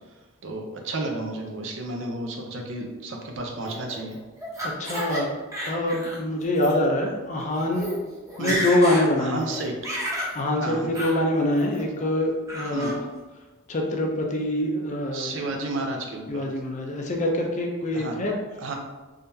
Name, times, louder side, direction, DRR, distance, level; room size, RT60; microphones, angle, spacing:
voice 1, 0.4-4.2 8.4-8.7 9.2-9.8 10.6-11.0 12.7-13.0 15.1-16.5 17.9-18.2 18.6-18.8, right 2 dB, 65° right, 2 dB, 0.6 m, -32 dB
Laughter, 3.7-5.2 5.5-6.2 6.6-6.7 7.4-7.5 7.7-8.0 8.3-9.1 9.4-10.3 10.9-11.2 11.6-12.0 12.5-13.0, equal, 15° right, 0.8 m, -31 dB
voice 2, 4.6-5.3 5.7-7.9 8.4-9.5 10.3-13.0 13.7-15.4 16.3-18.4, left 1 dB, 35° left, 1 dB, 0.5 m, -25 dB
3.7 x 3.3 x 2.7 m, 1.2 s
head